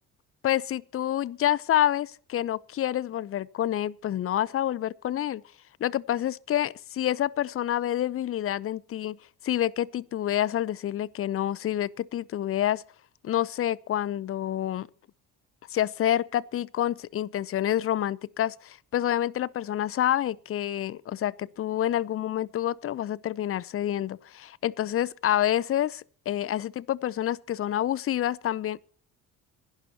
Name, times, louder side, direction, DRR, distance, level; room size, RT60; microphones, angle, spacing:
voice 1, 0.4-5.4 5.8-9.2 9.4-12.8 13.2-14.9 15.7-28.8, left 11 dB, 30° left, 0.6 m, -28 dB
26.0 x 12.0 x 2.8 m
figure-of-eight pair, 50°, 47 cm